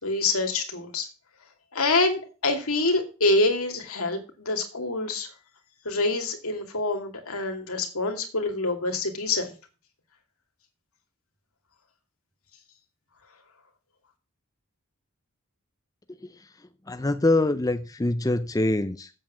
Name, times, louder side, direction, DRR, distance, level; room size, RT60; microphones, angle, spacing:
voice 1, 0.0-1.1 1.7-5.3 5.8-9.5, left 2 dB, 75° left, 2.5 m, -26 dB
voice 2, 16.2-19.1, left 2 dB, 15° left, 0.5 m, -25 dB
7.7 x 7.4 x 7.2 m
head